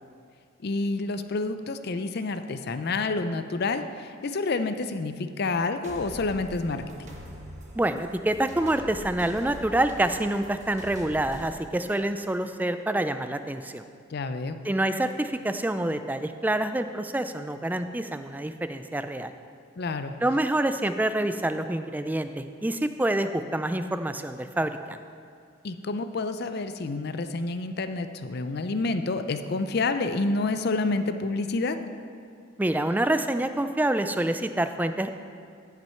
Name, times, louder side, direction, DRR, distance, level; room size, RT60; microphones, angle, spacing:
voice 1, 0.6-7.1 14.1-14.6 19.8-20.1 25.6-31.8, left 3 dB, 55° left, 9 dB, 0.5 m, -29 dB
sound 1, 5.8-11.5, equal, 35° right, 1.3 m, -44 dB
voice 2, 7.7-13.8 14.6-19.3 20.2-25.0 32.6-35.1, right 1 dB, 10° right, 9 dB, 0.3 m, -27 dB
14.5 x 6.0 x 4.4 m, 2.3 s
head